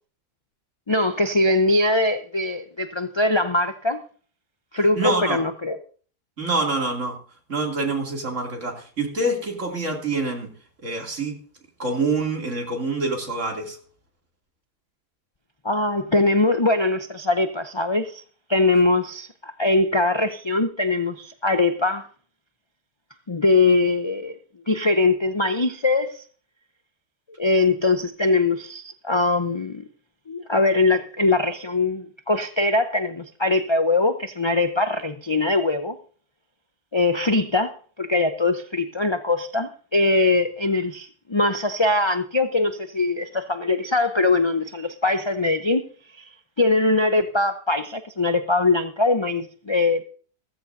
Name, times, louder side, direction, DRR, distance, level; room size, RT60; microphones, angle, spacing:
voice 1, 0.9-4.0 4.7-5.8 15.6-18.2 18.5-22.1 23.3-24.3 24.7-26.2 27.4-29.8 30.3-36.0 36.9-45.8 46.2-46.3 46.6-50.0, left 2 dB, 35° left, 0.4 m, -22 dB
voice 2, 5.0-5.4 6.4-7.2 7.5-10.5 10.8-11.4 11.8-13.8, right 3 dB, 50° right, 3.1 m, -26 dB
16.0 x 14.5 x 2.7 m
omnidirectional pair, 1.7 m